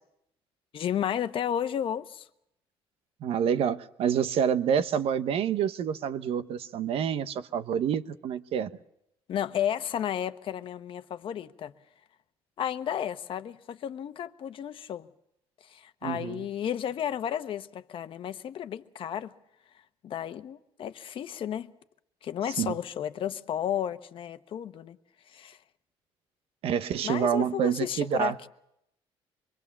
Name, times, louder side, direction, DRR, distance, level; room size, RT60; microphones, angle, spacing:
voice 1, 0.7-2.3 9.3-11.7 12.6-15.1 15.6-19.3 20.0-21.7 22.2-25.0 25.3-25.6 27.0-28.5, left 10 dB, 60° left, 1.1 m, -33 dB
voice 2, 3.2-8.7 16.0-16.5 22.6-22.8 26.6-28.4, right 8 dB, 70° right, 1.1 m, -27 dB
25.5 x 22.5 x 7.3 m
cardioid pair, 110°, 10 cm